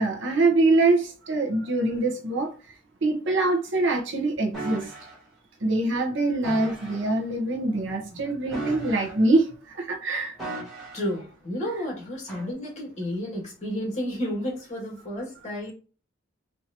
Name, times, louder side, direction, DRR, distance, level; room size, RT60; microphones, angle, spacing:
voice 1, 0.0-2.5 3.0-4.9 5.6-10.4, right 2 dB, 65° right, 0.9 m, -24 dB
sound 1, 4.5-5.2 6.4-7.1 8.5-9.4 10.4-11.1 12.3-12.5, right 2 dB, ahead, 2.1 m, -36 dB
voice 2, 10.9-15.7, equal, 35° left, 2.0 m, -31 dB
4.5 x 2.7 x 2.8 m
head